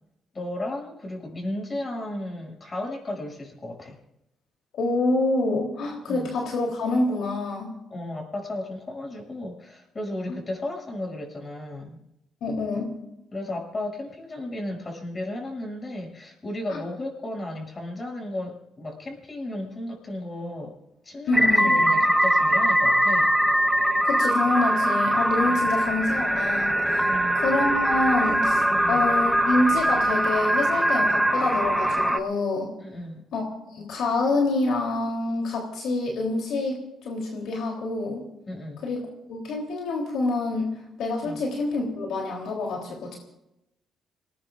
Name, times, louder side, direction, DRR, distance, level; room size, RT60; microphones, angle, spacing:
voice 1, 0.3-4.0 6.1-6.3 7.9-12.0 13.3-20.7 21.0-23.3 25.5-25.7 27.0-27.4 28.7-29.0 32.8-33.2 38.5-38.8 41.2-41.4, left 1 dB, 30° left, 1 dB, 7.2 m, -34 dB
voice 2, 4.7-7.7 10.3-10.4 12.4-12.9 16.7-16.8 21.3-21.7 24.0-27.1 27.4-32.7 33.3-38.2 38.8-43.1, left 2 dB, 75° left, -1 dB, 3.5 m, -27 dB
sound 1, 21.3-32.2, right 1 dB, ahead, 1.2 m, -22 dB
28.0 x 20.0 x 2.6 m, 0.88 s
cardioid pair, 90°, 0 cm